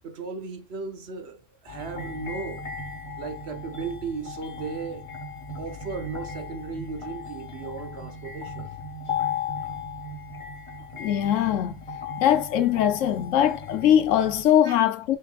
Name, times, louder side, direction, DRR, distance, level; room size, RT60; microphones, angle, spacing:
voice 1, 0.0-2.7 3.2-5.1 5.6-8.7 14.6-14.7, right 4 dB, 60° right, 1.0 m, -36 dB
sound 1, 1.7-14.4, left 5 dB, 25° left, 1.0 m, -36 dB
voice 2, 11.0-11.8 12.2-15.2, left 10 dB, 80° left, 1.0 m, -21 dB
6.5 x 3.3 x 2.4 m
omnidirectional pair, 1.3 m